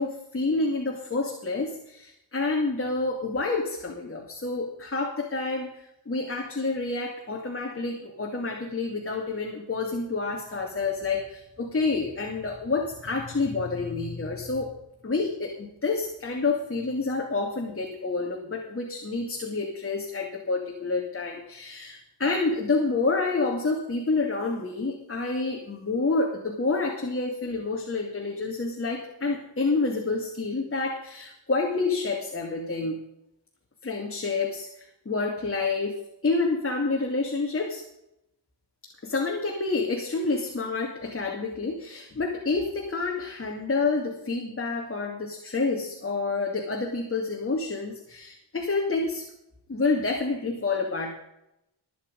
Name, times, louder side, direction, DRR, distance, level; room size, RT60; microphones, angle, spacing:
voice 1, 0.0-14.7 15.0-33.0 33.8-37.8 39.0-49.2 49.7-51.1, left 3 dB, 30° left, 0 dB, 2.6 m, -28 dB
21.0 x 9.0 x 5.4 m, 0.81 s
wide cardioid pair, 105°, 42 cm